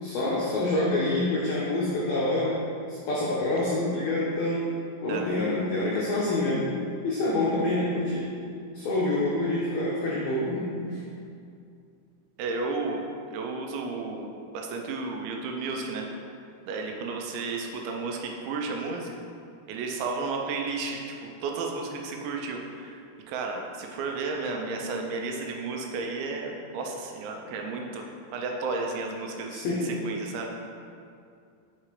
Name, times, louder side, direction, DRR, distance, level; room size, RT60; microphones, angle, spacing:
voice 1, 0.0-2.6 2.9-4.7 5.0-6.7 7.0-8.3 8.7-11.0 29.5-29.9, left 2 dB, 85° left, -6 dB, 2.1 m, -27 dB
voice 2, 12.4-16.1 16.7-19.1 19.7-30.5, right 3 dB, 85° right, 1 dB, 2.9 m, -33 dB
6.3 x 5.6 x 3.0 m, 2.4 s
omnidirectional pair, 5.2 m